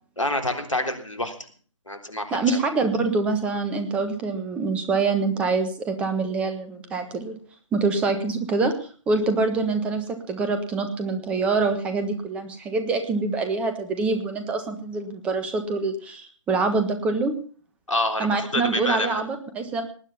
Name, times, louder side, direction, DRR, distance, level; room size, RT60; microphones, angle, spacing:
voice 1, 0.2-1.3 1.9-2.4 17.9-19.2, left 1 dB, 75° left, 7 dB, 3.6 m, -27 dB
voice 2, 2.3-7.4 7.7-8.7 9.1-17.3 18.2-19.8, right 3 dB, 5° right, 9 dB, 1.3 m, -25 dB
19.0 x 9.8 x 5.7 m, 0.43 s
figure-of-eight pair, 145°, 16 cm